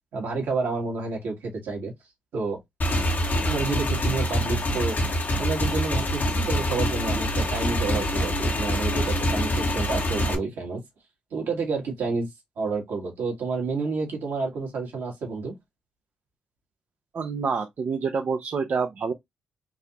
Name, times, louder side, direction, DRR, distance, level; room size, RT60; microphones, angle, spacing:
voice 1, 0.1-1.9 2.3-2.6 3.4-5.0 5.4-10.8 11.3-12.3 12.6-15.5, right 4 dB, 75° right, 1.7 m, -29 dB
Motorcycle / Engine, 2.8-10.4, equal, 55° left, 1.2 m, -25 dB
voice 2, 17.1-19.1, right 5 dB, 55° right, 0.6 m, -27 dB
3.9 x 2.7 x 2.9 m
hypercardioid pair, 40°, 4 cm